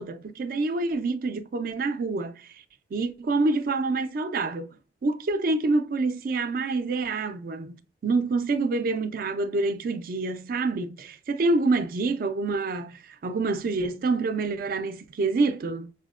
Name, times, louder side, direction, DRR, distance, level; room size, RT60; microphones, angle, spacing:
voice 1, 0.0-2.5 2.9-4.7 5.0-15.9, right 3 dB, 55° right, 0.4 m, -27 dB
5.4 x 2.1 x 2.3 m
head